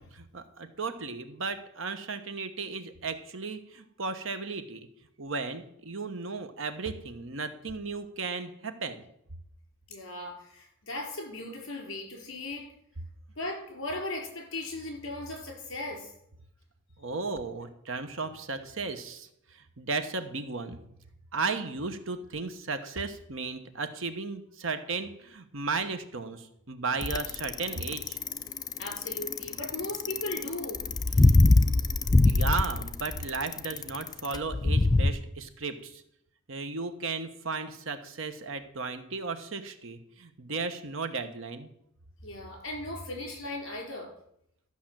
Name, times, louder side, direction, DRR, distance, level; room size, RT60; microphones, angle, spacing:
voice 1, 0.1-4.9 5.2-9.0 17.0-20.8 21.3-28.2 32.2-36.0 36.5-41.7, right 4 dB, 65° right, 9 dB, 1.0 m, -35 dB
voice 2, 9.9-12.6 13.4-16.1 28.8-30.8 42.2-44.1, left 2 dB, 60° left, 0 dB, 4.4 m, -37 dB
Bicycle, 27.0-35.1, left 2 dB, 20° left, 0.4 m, -23 dB
13.0 x 5.9 x 7.5 m, 0.74 s
head